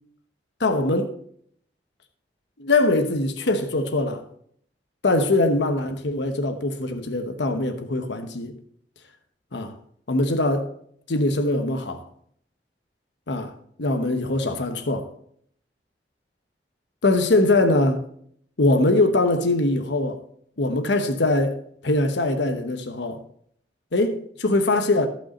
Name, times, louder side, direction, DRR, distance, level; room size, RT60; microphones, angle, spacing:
voice 1, 0.6-1.1 2.6-4.2 5.0-8.5 9.5-9.7 10.1-10.7 11.1-12.0 13.3-13.5 13.8-15.1 17.0-18.0 18.6-20.2 20.6-21.6 21.8-23.2 23.9-25.1, left 2 dB, 85° left, 1.0 m, -22 dB
14.0 x 5.7 x 4.2 m
head